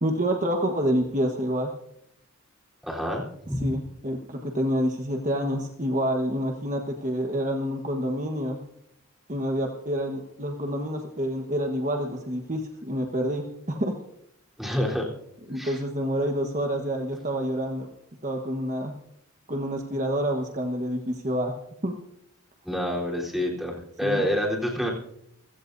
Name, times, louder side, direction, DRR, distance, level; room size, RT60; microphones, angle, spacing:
voice 1, 0.0-1.7 3.6-8.6 9.3-13.9 15.5-17.9 18.2-18.9 19.5-21.5 21.8-21.9 24.0-24.3, equal, 35° right, 2 dB, 1.3 m, -28 dB
voice 2, 2.8-3.7 14.6-15.1 15.5-15.8 22.6-24.9, equal, ahead, -3 dB, 3.8 m, -28 dB
28.0 x 16.5 x 2.7 m, 0.76 s
head